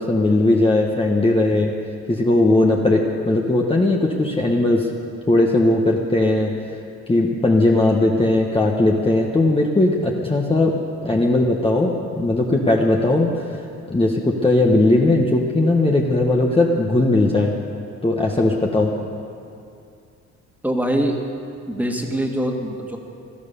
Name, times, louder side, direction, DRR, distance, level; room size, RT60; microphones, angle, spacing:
voice 1, 0.0-1.7 2.1-4.9 5.3-6.5 7.1-13.4 13.9-17.6 18.0-18.9, left 2 dB, 20° left, -1 dB, 1.4 m, -18 dB
voice 2, 20.6-21.2 21.7-23.0, right 1 dB, 5° right, 1 dB, 2.1 m, -23 dB
17.0 x 12.5 x 6.9 m, 2.5 s
cardioid pair, 90°, 30 cm